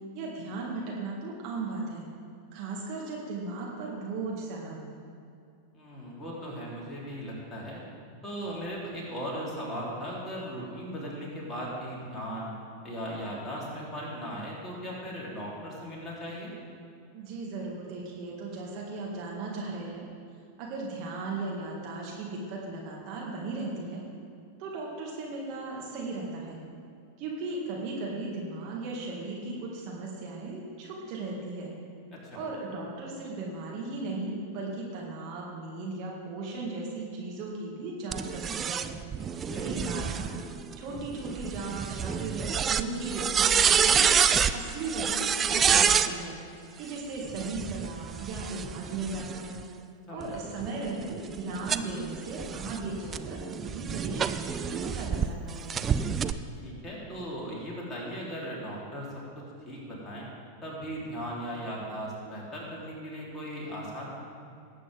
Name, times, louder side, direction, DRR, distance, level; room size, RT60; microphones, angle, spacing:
voice 1, 0.1-2.1 2.5-4.9 17.1-20.1 20.6-24.0 24.6-26.6 27.2-31.7 32.3-39.0 39.5-40.3 40.8-44.1 44.5-46.4 46.8-49.6 50.1-55.7, right 3 dB, 40° right, -3 dB, 2.0 m, -36 dB
voice 2, 5.7-7.8 8.2-12.5 12.8-16.5 32.1-32.4 39.5-39.7 50.1-50.4 56.6-59.1 59.7-60.3 60.6-64.1, equal, 15° left, -5 dB, 3.5 m, -37 dB
sound 1, 38.1-46.1 47.3-49.6 50.2-55.3 55.7-56.3, right 7 dB, 25° right, 0.4 m, -28 dB
18.5 x 8.4 x 3.6 m, 2.4 s
figure-of-eight pair, 90°, 0 cm